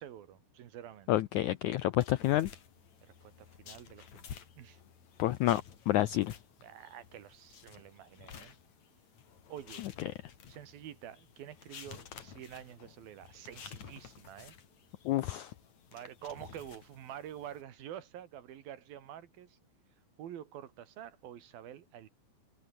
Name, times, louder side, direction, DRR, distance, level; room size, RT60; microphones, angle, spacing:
voice 1, 0.0-1.1 3.0-4.8 6.6-8.5 9.5-9.9 10.5-14.6 15.9-19.6 20.2-22.1, right 10 dB, 75° right, 3.7 m, -48 dB
voice 2, 1.1-2.5 5.2-6.3 15.1-15.5, left 14 dB, 80° left, 1.7 m, -29 dB
sound 1, 2.0-17.6, left 8 dB, 55° left, 3.5 m, -53 dB
omnidirectional pair, 4.3 m